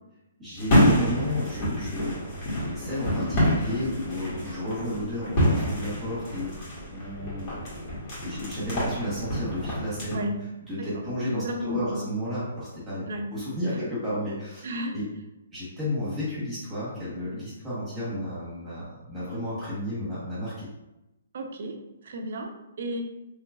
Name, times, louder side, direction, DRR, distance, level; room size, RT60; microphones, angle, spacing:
voice 1, 0.4-2.2 2.6-7.6 8.2-10.2 10.6-14.7 14.9-15.1 15.5-20.7, left 1 dB, 15° right, -10 dB, 1.3 m, -32 dB
sound 1, 0.6-10.2, equal, 35° left, 1.4 m, -27 dB
voice 2, 10.0-10.4 10.8-12.0 13.1-13.3 13.7-13.8 14.6-15.0 19.3-19.4 21.3-23.0, equal, 60° right, 3 dB, 0.5 m, -33 dB
3.1 x 2.9 x 2.5 m, 0.94 s
hypercardioid pair, 155°, 0 cm